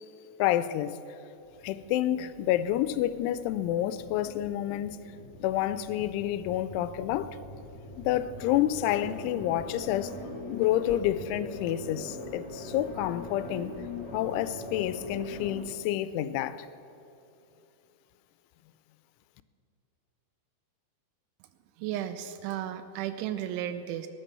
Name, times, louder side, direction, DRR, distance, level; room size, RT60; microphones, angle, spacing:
voice 1, 0.4-1.0 1.6-5.0 5.4-7.4 8.0-10.1 10.5-13.8 14.1-16.7, left 12 dB, 90° left, 3.0 m, -29 dB
sound 1, 1.4-15.6, left 2 dB, 50° left, 1.0 m, -42 dB
voice 2, 21.8-24.1, right 11 dB, 85° right, 3.0 m, -34 dB
19.0 x 10.0 x 6.8 m
omnidirectional pair, 5.4 m